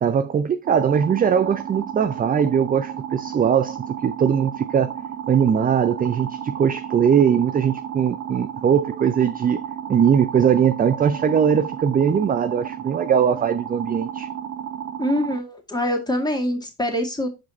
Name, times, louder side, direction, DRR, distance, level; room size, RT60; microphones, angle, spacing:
voice 1, 0.0-3.8 4.0-4.9 5.3-9.6 9.9-14.3, right 7 dB, 20° right, 0.4 m, -20 dB
sound 1, 0.6-15.4, right 8 dB, 35° right, 1.3 m, -33 dB
voice 2, 15.0-17.3, left 1 dB, 10° left, 2.2 m, -24 dB
6.1 x 4.8 x 4.3 m
hypercardioid pair, 65°, 46 cm